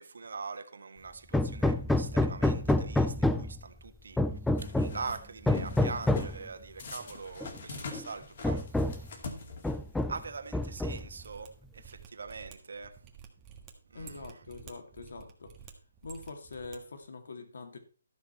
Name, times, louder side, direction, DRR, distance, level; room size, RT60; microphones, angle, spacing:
voice 1, 0.0-9.1 10.1-13.0 13.9-14.4, right 4 dB, 75° right, 1.5 m, -43 dB
Hammer, 1.3-3.6 4.2-5.0 5.5-6.4 7.4-7.5 7.9-8.0 8.4-9.1 9.6-10.3 10.5-11.2, left 1 dB, 5° left, 0.4 m, -28 dB
sound 1, 4.6-5.2 5.5-6.4 6.8-10.0, left 3 dB, 45° left, 2.2 m, -43 dB
Mechanisms, 10.7-16.8 17.0-17.1, right 8 dB, 15° right, 1.5 m, -52 dB
voice 2, 13.9-15.5 16.0-17.8, left 3 dB, 70° left, 2.4 m, -44 dB
12.5 x 6.9 x 4.4 m
hypercardioid pair, 165°, 0 cm